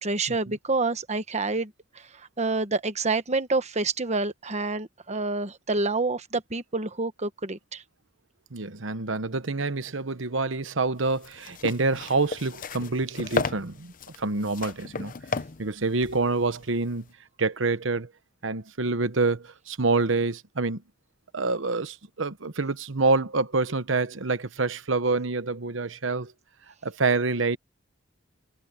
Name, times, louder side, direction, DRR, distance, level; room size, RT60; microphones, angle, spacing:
voice 1, 0.0-1.7 2.4-7.8, right 3 dB, 35° right, 1.3 m, -27 dB
voice 2, 8.5-15.1 15.6-17.0 17.4-18.1 18.4-20.8 21.3-26.3 26.8-27.6, right 3 dB, 80° right, 1.1 m, -27 dB
sound 1, 11.0-17.1, left 4 dB, 45° left, 0.8 m, -34 dB
head